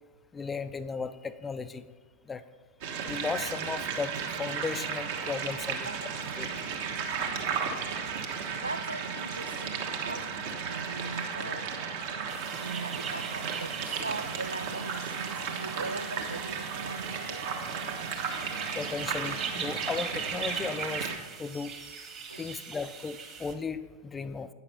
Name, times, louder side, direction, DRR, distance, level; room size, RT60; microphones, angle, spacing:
voice 1, 0.3-1.8 2.3-2.4 3.1-5.9 6.4-6.5 18.8-21.1 21.4-21.7 22.4-24.5, left 5 dB, 15° left, 12 dB, 0.4 m, -35 dB
sound 1, 2.8-21.2, right 6 dB, 50° right, 1.2 m, -34 dB
voice 2, 5.9-6.2 8.2-10.3 10.6-11.8 12.5-17.5 22.3-22.5, right 3 dB, 80° right, 9 dB, 0.3 m, -40 dB
sound 2, 12.3-23.5, right 6 dB, 30° right, 1.4 m, -41 dB
9.3 x 6.5 x 5.7 m, 1.4 s
figure-of-eight pair, 90°, 0 cm